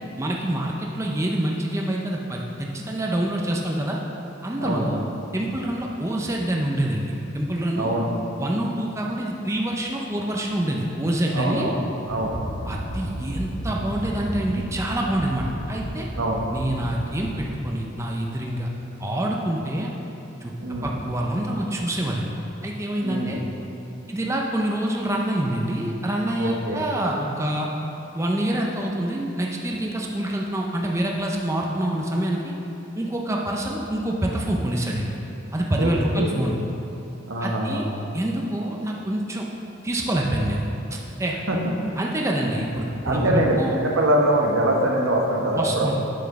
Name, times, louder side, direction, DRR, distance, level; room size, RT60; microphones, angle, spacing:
voice 1, 0.2-4.0 4.4-5.0 5.3-8.0 8.4-11.7 12.6-16.1 16.5-18.7 19.0-19.9 20.4-22.3 22.6-23.4 24.1-27.7 28.1-32.5 33.0-35.2 35.5-36.6 37.4-37.8 38.1-39.4 39.8-40.6 40.9-41.4 42.0-43.8 45.5-46.0, right 1 dB, 15° right, -1 dB, 0.6 m, -26 dB
voice 2, 4.6-4.9 7.7-8.1 11.3-11.7 12.1-12.4 16.2-16.4 20.6-20.9 23.0-23.4 26.4-26.8 35.8-36.4 37.3-37.9 41.5-41.6 41.8-41.9 43.0-46.0, right 1 dB, 85° right, -1 dB, 1.2 m, -23 dB
sound 1, 12.1-17.5, equal, 75° left, 2.0 m, -33 dB
8.3 x 6.2 x 5.8 m, 3.0 s
head